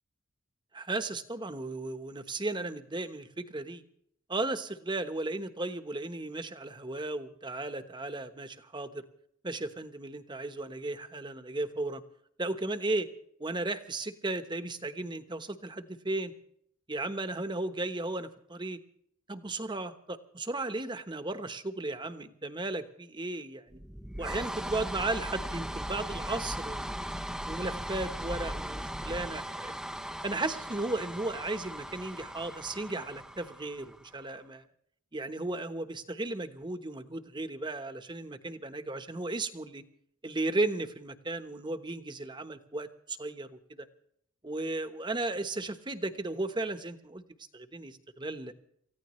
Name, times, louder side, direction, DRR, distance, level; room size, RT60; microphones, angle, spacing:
voice 1, 0.7-3.8 4.3-9.0 9.4-12.0 12.4-13.1 13.4-16.3 16.9-18.8 19.3-23.8 24.2-26.9 27.5-29.7 30.2-34.6 35.1-39.8 40.2-43.9 44.4-47.2 47.5-48.5, right 2 dB, 25° right, 9 dB, 1.1 m, -35 dB
sound 1, 23.7-34.2, equal, 5° right, 0.6 m, -38 dB
28.5 x 15.5 x 3.2 m, 0.69 s
head